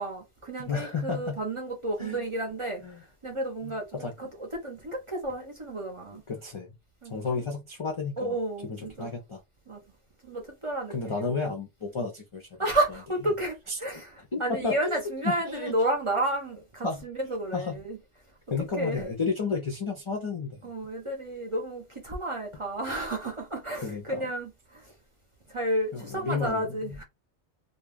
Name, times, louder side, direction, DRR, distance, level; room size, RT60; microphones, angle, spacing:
voice 1, 0.0-2.8 3.2-6.2 7.0-7.5 8.2-9.1 9.7-9.8 10.2-11.4 12.6-18.0 18.6-19.0 20.6-24.9 25.5-27.0, right 1 dB, 35° right, 0.6 m, -32 dB
voice 2, 0.7-1.4 2.0-2.2 2.8-3.0 3.6-4.1 6.3-6.7 7.1-8.4 8.6-9.4 10.9-12.5 13.7-13.8 14.3-15.0 15.2-15.7 16.8-17.0 17.5-17.8 18.5-20.6 23.8-24.2 25.9-27.0, left 4 dB, 45° left, 0.4 m, -32 dB
2.3 x 2.2 x 3.3 m
omnidirectional pair, 1.2 m